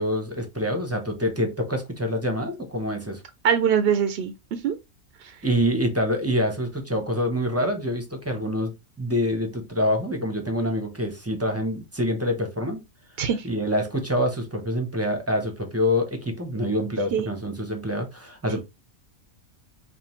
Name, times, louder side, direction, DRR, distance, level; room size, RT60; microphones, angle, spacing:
voice 1, 0.0-3.2 5.4-8.7 9.0-12.8 13.4-18.6, equal, 15° right, 0.6 m, -26 dB
voice 2, 3.4-4.8 5.2-5.3 13.2-13.5 17.1-17.3, right 8 dB, 65° right, 0.6 m, -23 dB
5.2 x 2.5 x 3.0 m
omnidirectional pair, 1.4 m